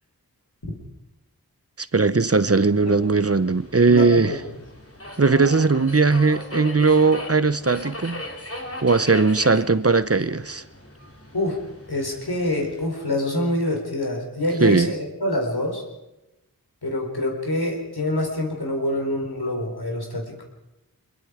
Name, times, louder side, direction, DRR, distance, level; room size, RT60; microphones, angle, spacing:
voice 1, 1.8-4.3 5.2-8.2 8.8-10.6 14.6-14.9, right 4 dB, 40° right, 0.8 m, -19 dB
Subway metro underground, 2.3-12.9, left 1 dB, 40° left, 3.3 m, -38 dB
voice 2, 3.9-4.4 11.3-11.6 11.9-15.8 16.8-20.4, left 1 dB, 85° left, 4.4 m, -26 dB
24.5 x 22.0 x 5.1 m
wide cardioid pair, 40°, 37 cm